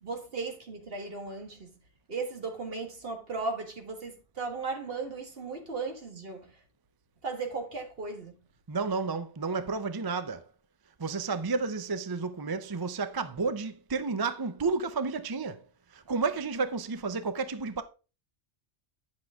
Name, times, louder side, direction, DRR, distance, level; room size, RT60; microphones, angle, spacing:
voice 1, 0.0-1.8 2.1-6.6 7.2-8.4, right 4 dB, 55° right, 1.8 m, -36 dB
voice 2, 8.7-10.5 11.0-17.8, right 4 dB, 30° right, 0.4 m, -31 dB
10.0 x 6.3 x 3.5 m
omnidirectional pair, 1.2 m